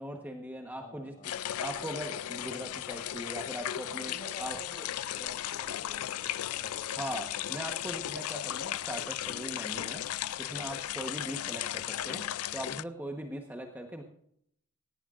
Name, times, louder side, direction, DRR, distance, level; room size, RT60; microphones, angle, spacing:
voice 1, 0.0-1.1 1.4-4.6 6.9-10.1 10.4-12.3 12.5-14.0, right 1 dB, 10° right, 2 dB, 1.1 m, -40 dB
voice 2, 0.8-1.4 3.9-7.7 11.3-11.8, equal, 35° left, 3 dB, 5.3 m, -51 dB
sound 1, 1.2-12.8, left 12 dB, 90° left, 0.4 m, -36 dB
18.0 x 17.0 x 2.5 m, 0.71 s
head